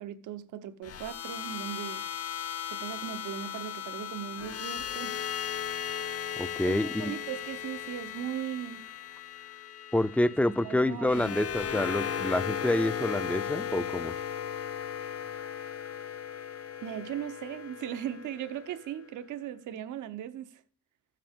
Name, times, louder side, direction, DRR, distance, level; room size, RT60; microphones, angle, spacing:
voice 1, 0.0-2.1 2.7-5.2 6.6-8.9 10.6-11.3 16.8-20.6, right 10 dB, 80° right, 0.9 m, -38 dB
sound 1, 0.8-19.0, left 8 dB, 50° left, 0.9 m, -37 dB
voice 2, 6.4-7.1 9.9-14.1, left 1 dB, 5° left, 0.4 m, -28 dB
14.0 x 7.8 x 3.6 m
cardioid pair, 90°, 30 cm